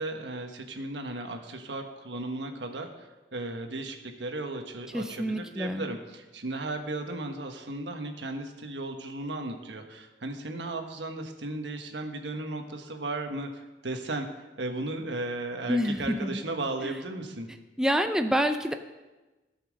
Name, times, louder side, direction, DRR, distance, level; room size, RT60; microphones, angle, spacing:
voice 1, 0.0-14.3 14.6-17.5, right 2 dB, 85° right, 4 dB, 1.3 m, -35 dB
voice 2, 4.9-5.9 15.7-16.4 16.8-17.0 17.8-18.7, equal, 5° right, 6 dB, 0.4 m, -27 dB
15.5 x 5.8 x 6.3 m, 1.1 s
head